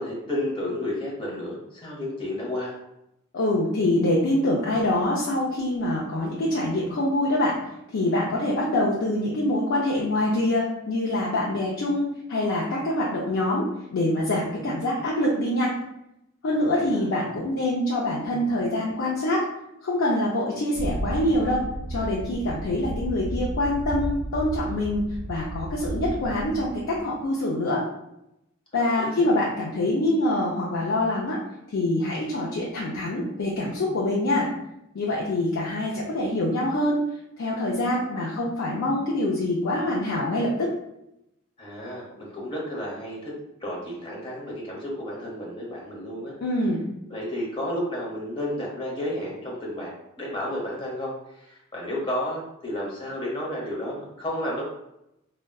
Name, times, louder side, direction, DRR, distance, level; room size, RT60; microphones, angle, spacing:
voice 1, 0.0-2.8 16.5-17.0 28.7-29.3 41.6-43.3 43.6-46.3 47.1-54.6, left 1 dB, 25° left, -4 dB, 0.8 m, -32 dB
voice 2, 3.3-7.6 7.9-15.7 16.4-19.4 19.8-21.6 21.9-25.0 25.3-27.8 28.7-31.4 31.7-34.5 34.9-37.0 37.4-40.7 46.4-46.8, left 1 dB, 65° left, -4 dB, 0.5 m, -25 dB
sound 1, 20.7-27.1, right 1 dB, 85° right, 0.6 m, -33 dB
3.6 x 2.2 x 2.2 m, 0.84 s
head